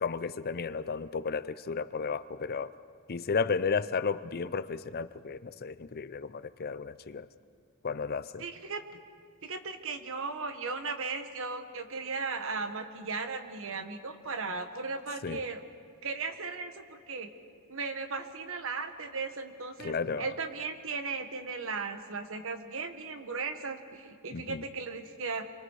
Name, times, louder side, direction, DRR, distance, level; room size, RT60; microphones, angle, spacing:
voice 1, 0.0-2.7 3.1-7.3 7.8-8.4 15.2-15.4 19.8-20.3 24.3-24.6, left 5 dB, 45° left, 0.5 m, -33 dB
voice 2, 8.4-8.8 9.4-15.6 16.0-17.3 17.7-25.4, right 4 dB, 65° right, 1.5 m, -36 dB
28.0 x 24.0 x 4.8 m
head